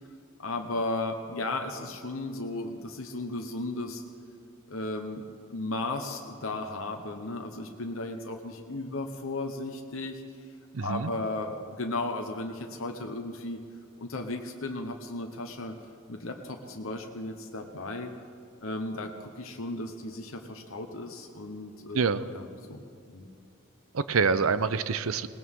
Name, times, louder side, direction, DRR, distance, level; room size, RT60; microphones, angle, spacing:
voice 1, 0.4-4.0 4.7-10.2 10.8-13.6 14.0-15.7 16.1-18.1 18.6-22.0 22.3-22.8 23.1-23.3, left 2 dB, 70° left, 4 dB, 1.0 m, -35 dB
voice 2, 10.7-11.1 21.9-22.2 23.9-25.3, right 5 dB, 80° right, 14 dB, 0.6 m, -26 dB
20.5 x 19.0 x 3.7 m, 2.6 s
head